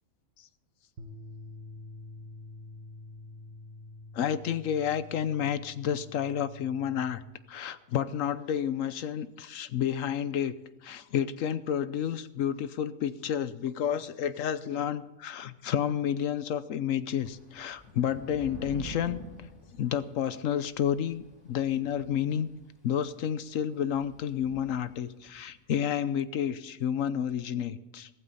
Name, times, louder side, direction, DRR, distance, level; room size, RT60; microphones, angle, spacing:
sound 1, 1.0-7.2, left 2 dB, 55° right, 1.3 m, -47 dB
voice 1, 4.1-7.2 7.5-10.5 10.8-19.2 19.7-22.5 22.8-28.1, left 9 dB, 70° left, 14 dB, 1.1 m, -30 dB
Thunder / Rain, 17.1-25.5, right 1 dB, 35° left, 6.4 m, -49 dB
16.0 x 14.5 x 4.1 m, 1.0 s
omnidirectional pair, 1.5 m